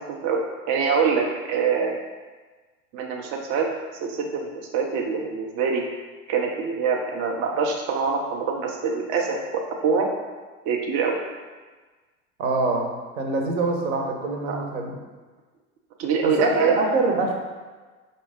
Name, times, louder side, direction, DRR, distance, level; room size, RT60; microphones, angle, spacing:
voice 1, 0.0-2.0 2.9-5.9 6.3-10.2 10.7-11.2 14.5-14.6 16.0-16.8, right 5 dB, 35° right, 1 dB, 0.4 m, -25 dB
voice 2, 12.4-12.9 13.2-14.9 16.2-17.3, right 3 dB, 65° right, 1 dB, 0.9 m, -24 dB
4.4 x 2.7 x 3.4 m, 1.3 s
figure-of-eight pair, 80°, 42 cm